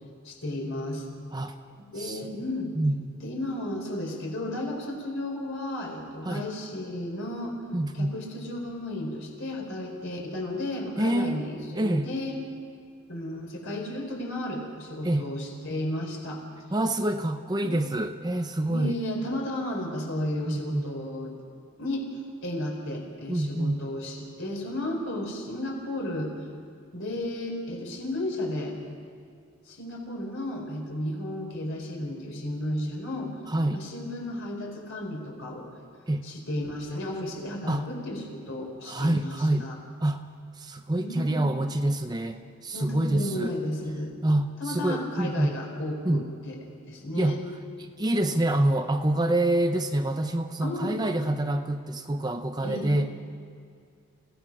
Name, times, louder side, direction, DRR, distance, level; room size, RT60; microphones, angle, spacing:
voice 1, 0.2-1.0 1.8-2.7 3.2-7.6 7.9-12.4 13.1-16.4 17.5-17.8 18.7-21.3 21.8-22.1 22.4-26.3 26.9-28.7 29.7-33.3 33.7-35.7 36.2-39.8 41.0-41.4 42.7-44.1 44.6-46.6 46.8-47.4 50.6-51.0 52.6-53.0, left 1 dB, 60° left, 0 dB, 4.8 m, -33 dB
voice 2, 2.7-3.2 6.2-6.4 7.7-8.1 11.0-11.5 11.7-12.1 15.0-15.3 16.7-19.0 20.5-20.9 23.3-23.8 33.5-33.8 36.1-36.3 37.7-37.9 38.8-39.7 40.0-40.3 40.6-43.6 44.2-45.5 46.0-46.3 47.1-47.4 47.8-53.1, right 1 dB, 20° right, 7 dB, 0.7 m, -26 dB
28.5 x 17.0 x 6.1 m, 2.4 s
head